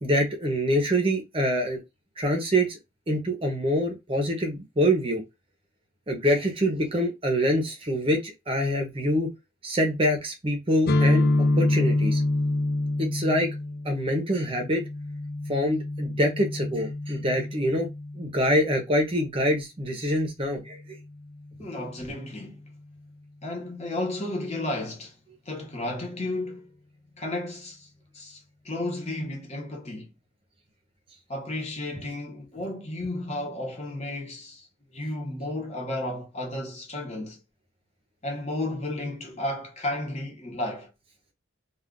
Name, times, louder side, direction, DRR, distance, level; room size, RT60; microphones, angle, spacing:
voice 1, 0.0-1.8 2.2-2.8 3.1-5.2 6.1-9.3 9.6-12.2 13.0-13.5 13.8-14.8 15.5-17.9 18.2-21.0, equal, 30° right, 0.7 m, -25 dB
sound 1, 10.9-18.6, left 2 dB, 50° left, 0.4 m, -27 dB
voice 2, 21.6-22.6 23.4-25.2 25.5-26.7 27.2-27.9 28.1-28.4 28.6-30.1 31.3-34.7 34.9-37.4 38.2-40.9, left 1 dB, 35° left, 0.9 m, -33 dB
2.4 x 2.3 x 3.6 m
head